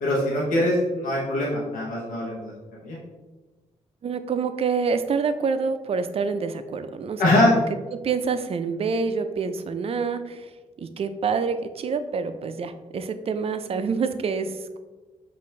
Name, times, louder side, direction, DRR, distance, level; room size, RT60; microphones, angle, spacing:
voice 1, 0.0-3.0 7.2-7.5, left 1 dB, 85° left, -4 dB, 0.9 m, -23 dB
voice 2, 4.0-7.6 7.9-14.8, right 5 dB, 45° right, 10 dB, 0.4 m, -27 dB
5.5 x 2.6 x 3.2 m, 1.2 s
cardioid pair, 75°, 14 cm